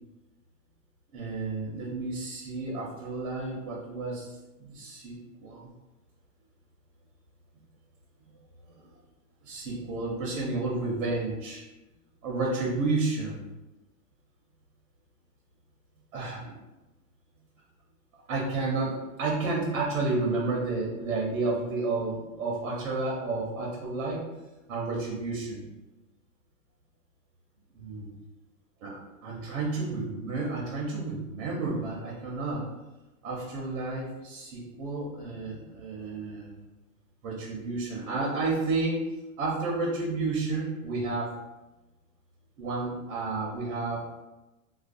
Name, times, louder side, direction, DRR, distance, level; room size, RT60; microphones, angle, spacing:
voice 1, 1.1-4.3 4.6-5.7 8.8-8.9 9.4-11.6 12.2-13.4 16.1-16.5 18.3-24.2 24.7-25.7 27.8-28.1 28.8-32.6 33.2-36.6 37.2-39.0 39.4-41.3 42.6-44.0, right 3 dB, 75° right, -3 dB, 0.8 m, -31 dB
2.4 x 2.2 x 2.5 m, 1.1 s
supercardioid pair, 155°, 42 cm